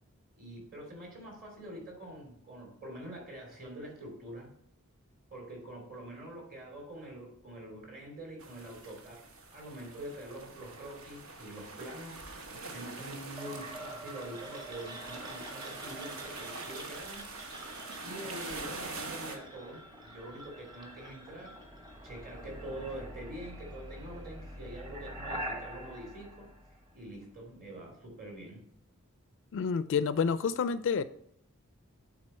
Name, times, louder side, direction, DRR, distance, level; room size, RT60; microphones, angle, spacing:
voice 1, 0.4-4.5 5.3-9.2 9.5-17.3 18.0-21.6 22.0-26.5 26.9-28.6, right 1 dB, 40° right, 0 dB, 2.7 m, -45 dB
sound 1, 8.4-19.4, right 3 dB, 65° right, 1.0 m, -44 dB
sound 2, 13.4-27.2, right 1 dB, 20° right, 1.0 m, -45 dB
voice 2, 29.5-31.0, left 6 dB, 60° left, 14 dB, 0.4 m, -29 dB
9.1 x 4.0 x 4.3 m, 0.70 s
head